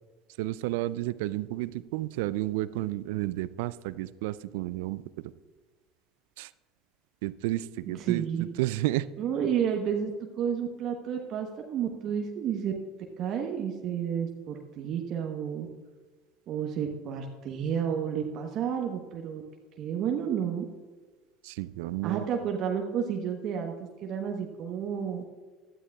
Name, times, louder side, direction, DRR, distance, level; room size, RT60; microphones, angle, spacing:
voice 1, 0.4-5.3 6.4-6.5 7.2-9.1 21.4-22.3, right 17 dB, 70° right, 17 dB, 0.4 m, -32 dB
voice 2, 8.0-8.4 9.2-12.7 13.2-15.7 16.5-19.4 19.8-20.6 22.0-23.7 24.0-25.2, right 8 dB, 50° right, 2 dB, 1.1 m, -31 dB
16.0 x 12.5 x 2.4 m, 1.4 s
hypercardioid pair, 70°, 0 cm